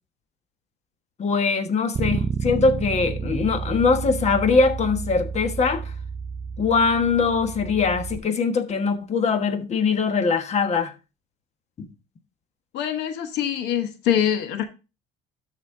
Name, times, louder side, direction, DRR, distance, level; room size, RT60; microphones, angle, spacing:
voice 1, 1.2-5.9 6.6-10.9 11.8-11.9, left 4 dB, 40° left, 1.3 m, -22 dB
Bass guitar, 1.9-8.2, right 5 dB, 25° right, 0.4 m, -30 dB
voice 2, 12.7-14.6, left 9 dB, 85° left, 1.0 m, -24 dB
13.0 x 4.3 x 3.6 m
cardioid pair, 110°, 17 cm